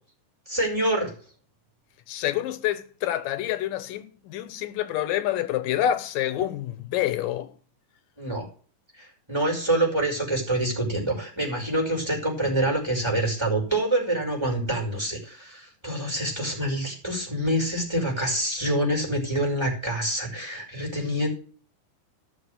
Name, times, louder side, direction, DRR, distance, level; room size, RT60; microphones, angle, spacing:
voice 1, 0.5-1.1 8.2-8.5 9.3-21.3, right 1 dB, 5° right, 4.9 m, -26 dB
voice 2, 2.1-7.5, left 12 dB, 85° left, 2.6 m, -27 dB
16.0 x 6.4 x 6.5 m
omnidirectional pair, 3.8 m